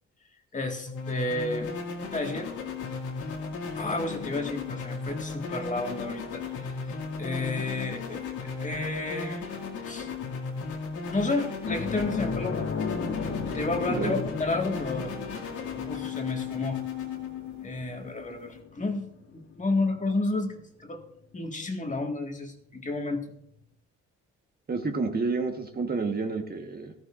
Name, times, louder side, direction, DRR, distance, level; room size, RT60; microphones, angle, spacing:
voice 1, 0.5-1.7 2.1-2.5 3.7-6.7 7.2-9.5 9.9-10.1 11.1-12.7 13.5-15.2 15.7-16.8 17.6-21.0 21.3-23.3, left 2 dB, 25° left, 3 dB, 1.7 m, -31 dB
sound 1, 0.9-18.6, left 5 dB, 80° left, 2.3 m, -36 dB
sound 2, 11.6-20.6 20.9-21.1 23.2-23.3, left 5 dB, 55° left, 2.0 m, -36 dB
voice 2, 24.7-26.9, right 4 dB, 30° right, 4 dB, 1.3 m, -29 dB
14.0 x 14.0 x 2.5 m, 0.74 s
cardioid pair, 90°, 30 cm